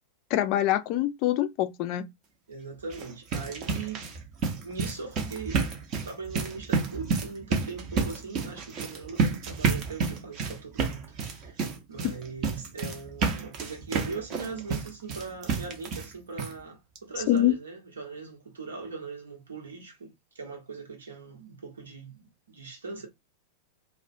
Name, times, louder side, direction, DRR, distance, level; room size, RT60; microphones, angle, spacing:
voice 1, 0.3-2.1 12.0-12.1 17.3-17.6, left 13 dB, 45° left, 0.4 m, -25 dB
voice 2, 2.5-4.0 4.6-5.7 6.0-11.6 11.9-23.1, right 4 dB, 70° right, 1.0 m, -40 dB
sound 1, 2.8-16.1 16.4-16.5 17.0-17.1 17.4-17.5, right 5 dB, 35° right, 0.7 m, -30 dB
2.4 x 2.1 x 2.6 m
figure-of-eight pair, 90°, 0 cm